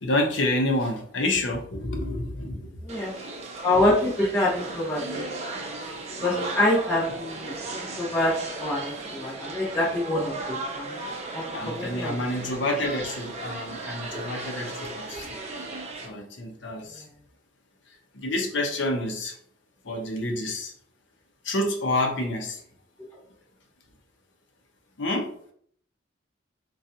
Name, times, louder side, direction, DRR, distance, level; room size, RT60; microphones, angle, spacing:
voice 1, 0.0-2.7 11.5-15.4 16.0-17.0 18.1-19.3 19.8-20.7 21.4-22.6 25.0-25.3, left 1 dB, 65° left, 2 dB, 0.7 m, -28 dB
sound 1, 2.9-16.1, right 2 dB, 35° right, 0.5 m, -36 dB
voice 2, 3.6-5.2 6.2-11.0 11.3-12.1 14.1-14.2, left 1 dB, 15° left, -7 dB, 0.9 m, -26 dB
3.7 x 2.3 x 2.7 m, 0.62 s
head